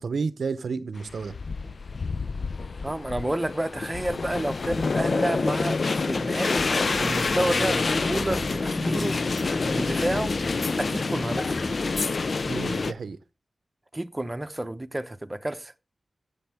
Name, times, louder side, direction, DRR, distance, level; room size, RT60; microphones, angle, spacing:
voice 1, 0.0-1.3 12.5-13.2, right 5 dB, 85° right, 0.6 m, -31 dB
sound 1, 1.0-12.9, left 4 dB, 65° left, 0.4 m, -27 dB
voice 2, 2.8-6.6 7.0-9.2 9.7-10.3 10.8-11.6 13.9-15.7, right 1 dB, 20° right, 0.8 m, -30 dB
sound 2, 6.6-12.0, equal, 5° left, 1.0 m, -35 dB
15.0 x 7.0 x 3.4 m
wide cardioid pair, 60°, 0 cm